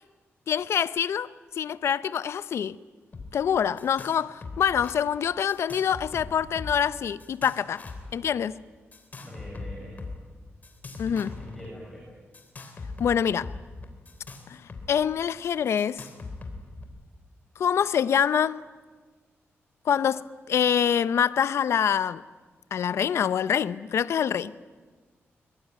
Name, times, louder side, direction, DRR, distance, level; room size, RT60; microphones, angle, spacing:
voice 1, 0.5-1.3 1.6-2.8 3.3-7.8 8.1-8.6 11.0-11.3 13.0-13.5 14.5-14.6 14.9-16.0 17.6-18.6 19.9-22.2 22.7-24.5, left 8 dB, 75° left, 0.7 m, -25 dB
sound 1, 3.1-3.3 3.5-4.2 4.4-4.9 5.5-6.9 7.2-8.1 8.9-10.2 10.6-11.7 12.3-14.9 15.1-15.2 15.8-16.8, left 3 dB, 35° left, 3.5 m, -40 dB
voice 2, 9.2-10.0 11.0-12.1, equal, ahead, 6.8 m, -43 dB
23.0 x 22.5 x 9.3 m
wide cardioid pair, 155°, 5 cm